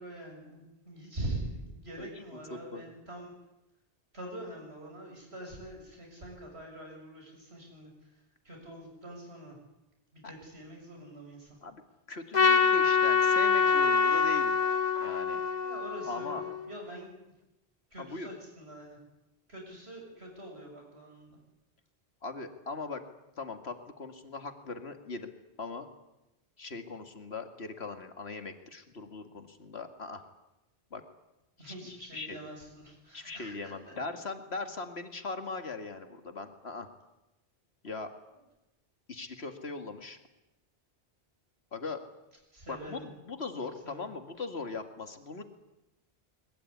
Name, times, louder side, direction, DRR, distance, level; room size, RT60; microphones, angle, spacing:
voice 1, 0.0-3.3 4.1-8.1 8.4-9.6 10.1-11.6 15.6-17.1 17.9-19.0 19.5-21.4 31.6-33.9 38.3-38.4 42.5-43.1 43.8-44.1, right 1 dB, 75° right, 0 dB, 6.8 m, -44 dB
voice 2, 2.5-2.9 10.2-10.3 11.6-11.8 12.1-14.6 15.0-15.4 16.1-16.4 18.0-18.3 22.2-23.0 23.4-25.3 25.6-25.9 26.6-30.2 30.9-31.0 31.7-32.4 33.1-36.9 37.8-38.1 39.1-40.2 41.7-42.0 42.7-45.4, left 3 dB, 75° left, 7 dB, 2.4 m, -40 dB
Trumpet, 12.3-16.7, left 5 dB, 40° left, 1.5 m, -25 dB
21.0 x 21.0 x 9.8 m, 0.97 s
omnidirectional pair, 1.1 m